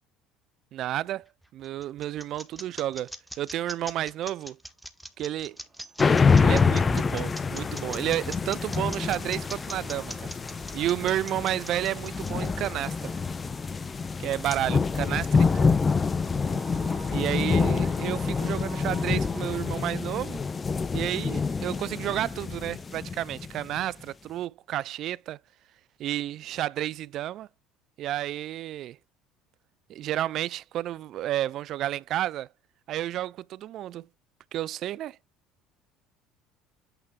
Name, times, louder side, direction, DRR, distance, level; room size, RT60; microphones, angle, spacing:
voice 1, 0.7-3.1 3.4-4.6 5.2-5.6 6.4-10.3 10.7-13.1 14.2-15.7 17.1-20.4 20.9-25.4 26.0-27.5 28.0-29.0 29.9-32.5 32.9-34.1 34.5-35.2, right 13 dB, 55° right, 0.3 m, -31 dB
sound 1, 1.2-13.3, equal, ahead, 1.3 m, -41 dB
sound 2, 5.4-19.6, right 4 dB, 25° right, 2.5 m, -50 dB
sound 3, 6.0-23.8, left 5 dB, 30° left, 0.6 m, -26 dB
8.9 x 4.9 x 2.3 m
hypercardioid pair, 65°, 0 cm